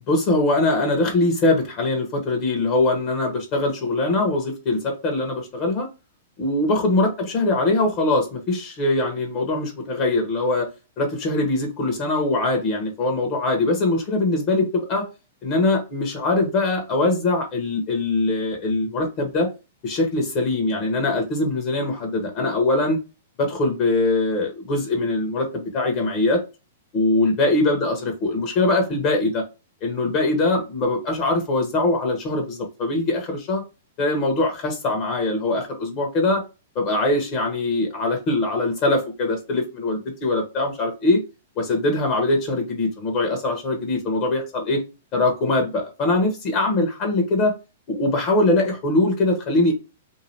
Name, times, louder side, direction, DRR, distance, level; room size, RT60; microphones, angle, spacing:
voice 1, 0.1-5.9 6.4-10.7 11.0-15.1 15.4-19.5 19.8-23.0 23.4-26.4 26.9-29.4 29.8-33.6 34.0-36.4 36.7-41.2 41.6-44.8 45.1-47.5 47.9-49.7, left 2 dB, 40° left, 1.1 m, -22 dB
2.7 x 2.4 x 3.2 m
hypercardioid pair, 125°, 0 cm